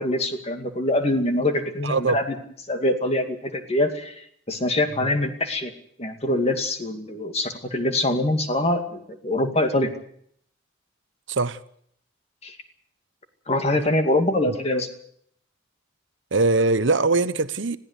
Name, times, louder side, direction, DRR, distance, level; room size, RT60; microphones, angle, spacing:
voice 1, 0.0-2.3 2.7-5.7 6.0-9.9 12.4-12.6 13.5-14.9, left 1 dB, 30° left, 2.4 m, -24 dB
voice 2, 1.8-2.2 5.0-5.1 11.3-11.6 14.4-14.5 16.3-17.8, right 3 dB, 70° right, 0.9 m, -22 dB
21.0 x 16.0 x 8.2 m
head